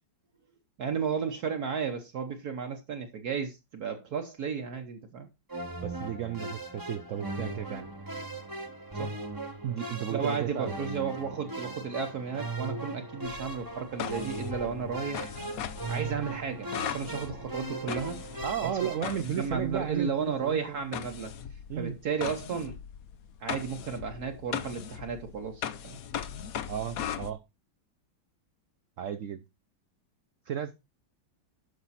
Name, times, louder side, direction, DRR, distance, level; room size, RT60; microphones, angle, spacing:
voice 1, 0.8-5.3 8.9-9.1 10.1-15.3 15.9-18.2 18.6-18.9 19.2-21.3 21.8-22.8 23.4-26.0, right 6 dB, 60° right, 1.4 m, -33 dB
sound 1, 5.5-19.2, right 2 dB, 10° right, 1.3 m, -38 dB
voice 2, 5.8-7.9 9.6-10.8 18.4-20.8 21.7-22.0 26.7-27.4 29.0-29.4 30.5-30.8, right 9 dB, 85° right, 0.6 m, -34 dB
sound 2, 13.3-20.1 20.9-27.3, left 9 dB, 60° left, 1.0 m, -39 dB
11.5 x 5.9 x 4.1 m
omnidirectional pair, 2.1 m